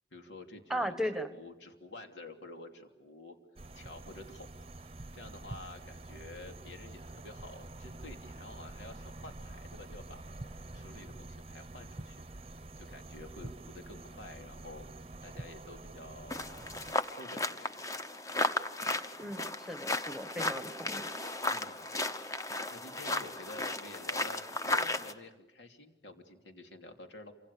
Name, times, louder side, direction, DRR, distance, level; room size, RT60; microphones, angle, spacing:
voice 1, 0.1-3.4 3.7-4.5 4.7-18.0 21.5-21.9 22.7-27.3, left 2 dB, 85° left, 4 dB, 3.1 m, -50 dB
voice 2, 0.7-1.3 19.2-21.1, equal, ahead, 9 dB, 1.4 m, -36 dB
sound 1, 3.6-16.9, right 2 dB, 35° right, 0.8 m, -47 dB
sound 2, 16.3-25.1, left 2 dB, 20° left, 1.0 m, -35 dB
28.0 x 25.5 x 7.0 m, 1.0 s
head